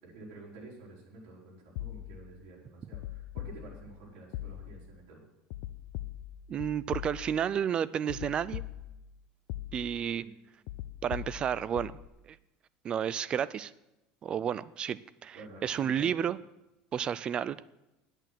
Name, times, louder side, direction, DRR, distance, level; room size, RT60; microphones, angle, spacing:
voice 1, 0.0-5.2 10.2-10.3 15.3-16.2, right 2 dB, 70° right, -3 dB, 4.8 m, -50 dB
sound 1, 1.8-2.4 2.9-4.0 4.3-5.0 5.5-7.5 8.1-9.1 9.5-10.1 10.7-12.1, left 14 dB, 75° left, 0.7 m, -41 dB
voice 2, 6.5-8.6 9.7-10.2 11.0-11.9 12.3-12.4 12.8-13.7 14.2-15.4 15.6-16.4 16.9-17.6, right 8 dB, 30° right, 18 dB, 0.3 m, -31 dB
10.0 x 8.9 x 7.6 m, 0.94 s
cardioid pair, 160°, 3 cm